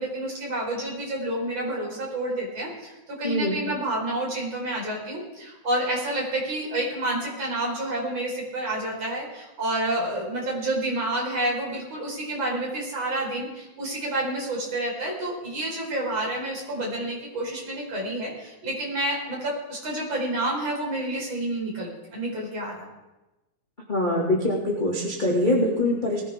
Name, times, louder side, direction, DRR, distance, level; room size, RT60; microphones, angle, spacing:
voice 1, 0.0-22.9, right 1 dB, 40° right, -4 dB, 6.0 m, -29 dB
voice 2, 3.2-3.6 23.9-26.2, left 1 dB, 15° left, -4 dB, 1.9 m, -23 dB
20.5 x 16.0 x 3.7 m, 1.0 s
omnidirectional pair, 4.4 m